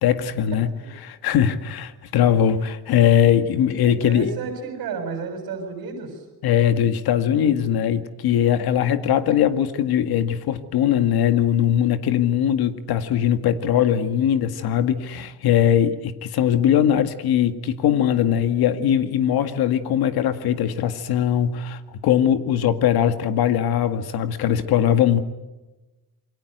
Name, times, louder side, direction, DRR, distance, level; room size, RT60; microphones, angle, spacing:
voice 1, 0.0-0.7 1.0-4.3 6.4-25.2, left 9 dB, 70° left, 9 dB, 2.0 m, -20 dB
voice 2, 3.8-6.3, right 4 dB, 60° right, 2 dB, 6.9 m, -31 dB
28.0 x 24.0 x 8.0 m, 1.1 s
cardioid pair, 160°, 38 cm